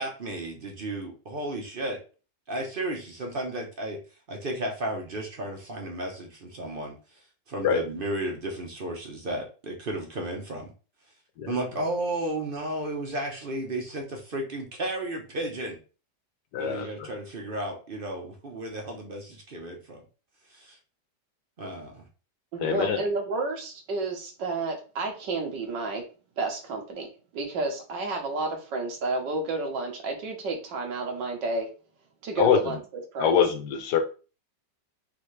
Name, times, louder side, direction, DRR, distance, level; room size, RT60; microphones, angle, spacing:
voice 1, 0.0-2.0 2.5-4.0 4.3-10.7 11.4-15.8 16.6-20.0 20.5-20.8 21.6-22.1, right 1 dB, 45° right, 1 dB, 0.7 m, -33 dB
voice 2, 16.5-16.9 22.6-23.0 32.4-32.6 33.2-34.0, left 7 dB, 75° left, 7 dB, 1.3 m, -23 dB
voice 3, 22.5-26.0 26.4-31.7 32.2-32.8 33.1-33.4, right 3 dB, 90° right, 2 dB, 1.7 m, -31 dB
4.0 x 3.3 x 3.2 m, 0.35 s
omnidirectional pair, 1.9 m